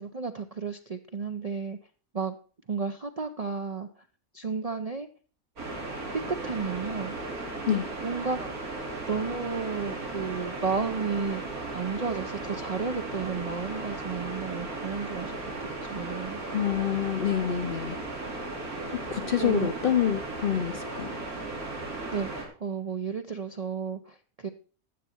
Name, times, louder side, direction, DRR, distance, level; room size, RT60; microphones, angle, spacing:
voice 1, 0.0-1.8 2.1-2.4 2.7-3.9 4.3-5.1 6.1-7.1 8.0-8.5 9.1-11.4 11.7-15.3 15.6-16.4 19.4-19.7 22.1-24.5, right 5 dB, 45° right, 5 dB, 0.5 m, -32 dB
sound 1, 5.6-22.4, right 2 dB, 85° right, 3.5 m, -36 dB
voice 2, 16.5-18.0 18.9-21.2, left 9 dB, 50° left, 10 dB, 0.7 m, -27 dB
12.5 x 8.1 x 4.4 m, 0.38 s
omnidirectional pair, 1.5 m